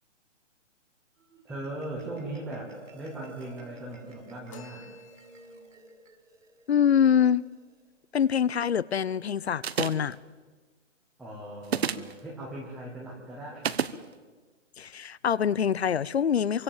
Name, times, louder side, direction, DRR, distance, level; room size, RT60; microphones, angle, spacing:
Marimba xylophone, 1.2-7.8, right 2 dB, 80° right, 6.0 m, -52 dB
voice 1, 1.4-4.9 11.2-13.6, right 1 dB, ahead, 0.9 m, -39 dB
sound 1, 4.5-5.8, left 8 dB, 25° left, 2.2 m, -51 dB
voice 2, 6.7-7.5 8.1-10.2 14.8-16.6, left 8 dB, 55° left, 0.8 m, -25 dB
sound 2, 9.6-10.1 11.6-12.1 13.6-14.0, right 7 dB, 55° right, 1.2 m, -28 dB
27.5 x 24.5 x 7.4 m
hypercardioid pair, 175°, 37 cm